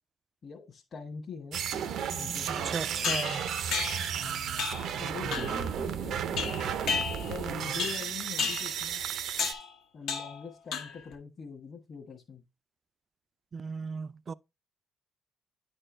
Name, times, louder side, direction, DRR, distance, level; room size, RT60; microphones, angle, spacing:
voice 1, 0.4-1.6 2.2-3.2 4.2-7.0 7.3-9.0 9.9-12.4, left 5 dB, 50° left, 1.4 m, -43 dB
sound 1, 1.5-9.5, right 8 dB, 75° right, 0.7 m, -33 dB
voice 2, 2.6-3.4 13.5-14.3, right 5 dB, 40° right, 0.4 m, -36 dB
sound 2, 3.0-4.2 4.6-4.9 5.3-5.7 6.4-7.4 7.8-8.1 8.4-8.7 9.4-9.7 10.1-10.4 10.7-11.1, left 6 dB, 85° left, 1.3 m, -33 dB
9.8 x 4.5 x 3.2 m
cardioid pair, 90°, 0 cm